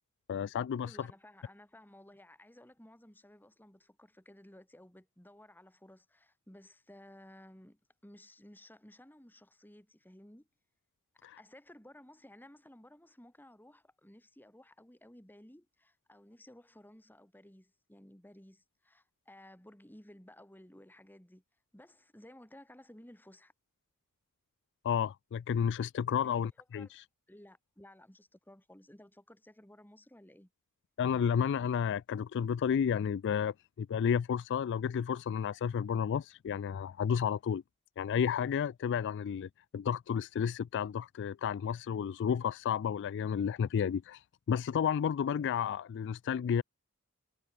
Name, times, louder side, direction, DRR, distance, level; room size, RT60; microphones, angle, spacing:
voice 1, 0.3-1.1 11.2-11.4 24.8-26.9 31.0-37.6 38.0-46.6, left 7 dB, 55° left, 0.3 m, -32 dB
voice 2, 0.8-10.5 11.2-21.4 21.7-23.5 26.2-26.9 27.3-30.5, left 1 dB, 10° left, 3.1 m, -56 dB
head